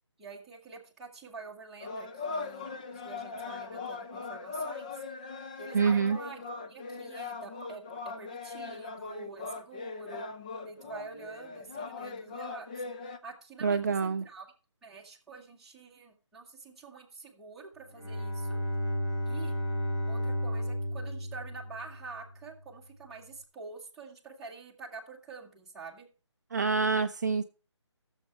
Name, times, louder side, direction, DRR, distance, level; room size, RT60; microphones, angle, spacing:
voice 1, 0.2-5.0 5.6-10.2 10.6-12.7 13.2-14.5 14.8-18.6 19.2-19.6 20.1-26.1, right 4 dB, ahead, -7 dB, 1.6 m, -47 dB
sound 1, 1.8-13.2, left 4 dB, 15° left, 0.5 m, -40 dB
voice 2, 5.7-6.2 13.6-14.2 26.5-27.4, right 5 dB, 40° right, 7 dB, 0.4 m, -26 dB
Bowed string instrument, 17.9-22.4, equal, 60° left, 3.3 m, -33 dB
14.5 x 7.2 x 4.6 m, 0.36 s
figure-of-eight pair, 160°, 15 cm